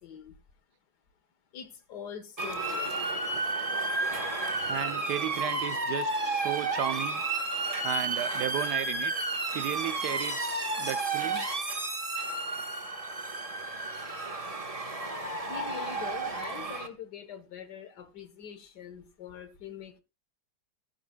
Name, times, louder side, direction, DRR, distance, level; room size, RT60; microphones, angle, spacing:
voice 1, 0.0-0.4 1.5-3.2 15.5-20.0, left 8 dB, 85° left, 1.9 m, -44 dB
Motor vehicle (road) / Siren, 2.4-16.9, right 2 dB, 25° right, 1.5 m, -32 dB
voice 2, 4.6-7.2 7.8-9.1 9.5-11.5, right 12 dB, 90° right, 1.3 m, -34 dB
16.0 x 10.5 x 2.4 m
omnidirectional pair, 1.7 m